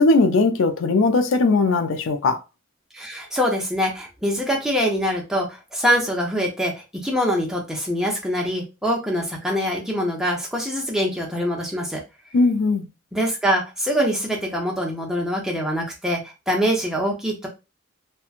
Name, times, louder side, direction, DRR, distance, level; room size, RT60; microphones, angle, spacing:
voice 1, 0.0-2.4 12.3-12.9, left 3 dB, 80° left, 0.4 m, -19 dB
voice 2, 2.9-12.0 13.1-17.5, equal, 5° right, 0.6 m, -24 dB
2.9 x 2.2 x 2.4 m
head